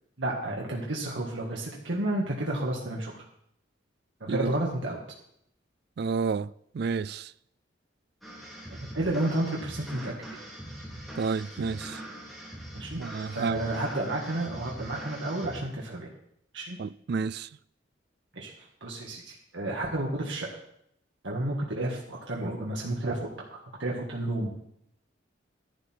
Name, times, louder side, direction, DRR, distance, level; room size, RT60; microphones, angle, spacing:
voice 1, 0.2-3.2 4.2-5.0 8.8-10.1 12.7-13.0 13.3-16.1 16.5-16.8 18.3-18.5 18.8-20.5 21.2-24.5, right 1 dB, 70° right, 1.8 m, -31 dB
voice 2, 6.0-6.5 6.7-7.3 11.2-12.0 13.0-13.6 16.8-17.5, right 5 dB, 55° right, 0.3 m, -30 dB
sound 1, 8.2-15.6, equal, ahead, 3.3 m, -42 dB
11.5 x 11.5 x 4.5 m
head